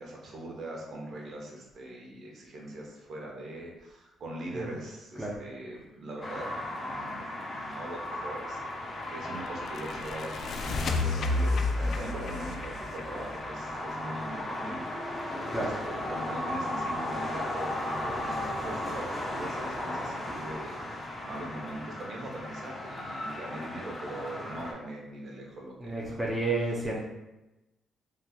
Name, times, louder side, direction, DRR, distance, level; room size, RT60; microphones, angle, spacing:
voice 1, 0.0-26.3, right 1 dB, 60° right, -1 dB, 0.9 m, -41 dB
sound 1, 6.2-24.7, left 1 dB, 20° left, 0.8 m, -36 dB
sound 2, 8.3-14.1, left 3 dB, 60° left, 0.3 m, -32 dB
voice 2, 25.8-27.0, right 2 dB, 10° right, -4 dB, 0.5 m, -31 dB
3.5 x 2.8 x 2.2 m, 1.0 s
cardioid pair, 90°, 0 cm